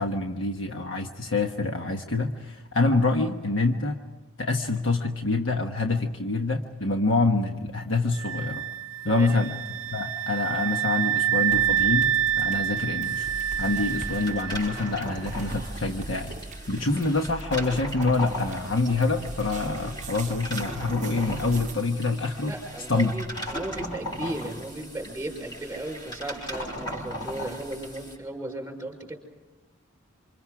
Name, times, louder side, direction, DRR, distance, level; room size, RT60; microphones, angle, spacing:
voice 1, 0.0-4.0 4.4-8.7 9.0-9.5 9.9-13.3 13.6-16.3 16.7-22.5 22.9-23.1, left 3 dB, 65° left, 4 dB, 1.3 m, -26 dB
sound 1, 8.2-15.0, right 10 dB, 75° right, 0.7 m, -27 dB
voice 2, 9.1-9.4 22.5-29.2, right 1 dB, 10° right, 1 dB, 5.5 m, -35 dB
sound 2, 11.5-21.7, right 2 dB, 35° right, 0.7 m, -40 dB
sound 3, 13.0-28.2, equal, 20° left, 5.6 m, -38 dB
27.5 x 26.5 x 5.0 m, 1.3 s
head